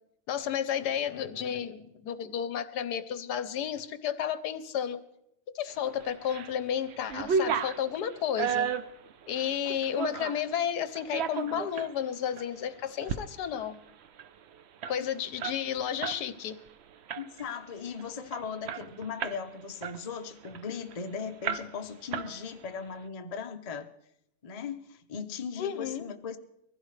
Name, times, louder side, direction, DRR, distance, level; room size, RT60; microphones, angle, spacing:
voice 1, 0.3-5.0 5.5-8.7 9.3-13.8 14.9-16.6 25.6-26.0, left 9 dB, 75° left, 12 dB, 1.3 m, -32 dB
sound 1, 6.0-6.5 6.9-10.5 11.0-11.9 12.4-12.5 12.9-13.2 13.5-13.6 13.9-16.2 16.5-16.7 17.1-17.5 18.0-18.1 18.3-19.5 19.8-21.0 21.4-21.9 22.1-22.8, right 6 dB, 65° right, 0.6 m, -33 dB
voice 2, 17.2-23.9 24.4-26.4, left 6 dB, 40° left, 6 dB, 0.5 m, -38 dB
23.0 x 15.5 x 3.3 m, 0.81 s
omnidirectional pair, 1.8 m